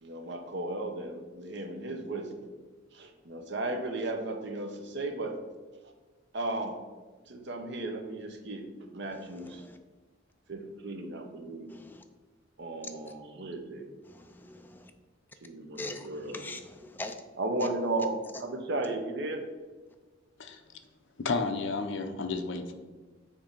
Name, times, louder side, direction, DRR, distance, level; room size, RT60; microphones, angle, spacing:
voice 1, 0.0-2.5 2.9-5.4 5.7-5.9 6.3-6.8 7.3-9.6 10.5-11.7 12.6-13.9 15.4-16.4 17.4-19.5, right 2 dB, 60° right, 5 dB, 0.7 m, -35 dB
voice 2, 9.1-9.8 11.7-12.0 14.1-14.9 15.8-17.1, left 2 dB, 10° left, 5 dB, 0.3 m, -43 dB
voice 3, 21.2-22.8, left 4 dB, 65° left, 5 dB, 0.6 m, -32 dB
7.1 x 2.8 x 5.1 m, 1.3 s
head